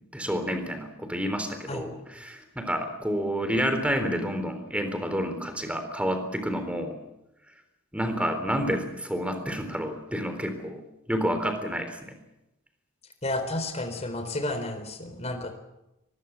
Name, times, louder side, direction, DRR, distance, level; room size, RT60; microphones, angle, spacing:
voice 1, 0.1-7.0 7.9-10.8 11.1-12.2, equal, 5° right, 7 dB, 3.7 m, -29 dB
voice 2, 13.2-15.5, left 1 dB, 30° left, 7 dB, 4.0 m, -31 dB
24.0 x 21.0 x 7.3 m, 0.89 s
head